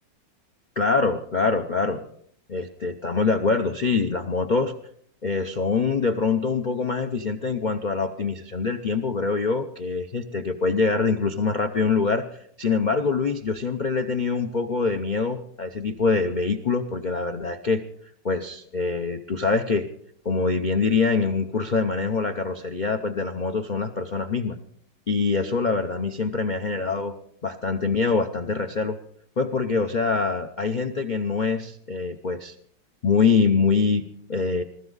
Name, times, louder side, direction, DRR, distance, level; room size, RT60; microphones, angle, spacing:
voice 1, 0.8-2.0 2.5-4.7 5.2-12.3 12.6-17.8 18.2-19.9 20.2-24.6 25.1-27.2 27.4-29.0 29.4-32.5 33.0-34.6, left 4 dB, 90° left, 7 dB, 0.4 m, -24 dB
21.0 x 13.5 x 4.0 m, 0.65 s
omnidirectional pair, 2.0 m